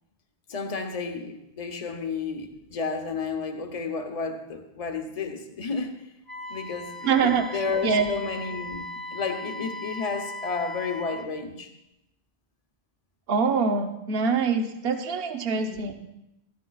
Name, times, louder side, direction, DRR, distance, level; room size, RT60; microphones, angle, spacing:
voice 1, 0.5-5.9 6.5-11.7 15.5-15.8, left 4 dB, 40° left, 5 dB, 0.9 m, -32 dB
Wind instrument woodwind instrument, 6.3-11.3, left 1 dB, 20° right, 0.8 m, -38 dB
voice 2, 7.0-7.4 7.8-8.1 13.3-15.9, right 5 dB, 65° right, 6 dB, 1.0 m, -24 dB
14.0 x 13.0 x 2.3 m, 0.86 s
omnidirectional pair, 1.1 m